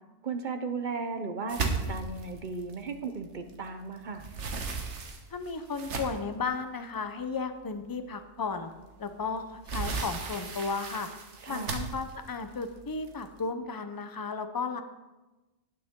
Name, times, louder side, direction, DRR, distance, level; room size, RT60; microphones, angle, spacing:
voice 1, 0.2-4.3 11.4-11.7, right 4 dB, 50° right, 7 dB, 0.8 m, -35 dB
sound 1, 1.5-3.7 4.0-6.4 7.0-7.1 7.6-7.7 9.1-13.4, right 4 dB, 75° right, 1.4 m, -36 dB
voice 2, 5.3-8.7 9.0-11.1 11.5-14.8, left 4 dB, 25° left, 8 dB, 0.5 m, -34 dB
18.0 x 6.5 x 3.7 m, 1.1 s
omnidirectional pair, 1.2 m